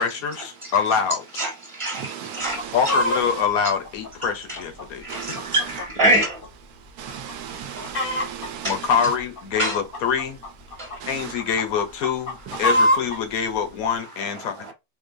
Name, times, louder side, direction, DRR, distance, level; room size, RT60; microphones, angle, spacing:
voice 1, 0.0-1.2 2.7-5.0 8.6-10.4 11.0-14.7, left 7 dB, 75° left, 1.1 m, -25 dB
voice 2, 1.4-3.0 4.5-4.6 5.0-6.4 7.5-8.0 8.6-8.7 9.6-9.8 10.8-10.9 14.4-14.7, right 1 dB, 20° right, 1.2 m, -25 dB
voice 3, 1.9-2.9 3.3-3.4 5.1-5.5 7.0-8.9 11.0-11.3 12.5-12.9, right 9 dB, 85° right, 1.2 m, -36 dB
Chicken rooster, 2.4-3.2 3.8-6.1 6.4-6.5 7.1-7.3 7.6-8.5 9.2-11.0 11.4-13.2 13.9-14.0, equal, 45° left, 0.8 m, -25 dB
3.8 x 2.5 x 2.5 m
omnidirectional pair, 1.6 m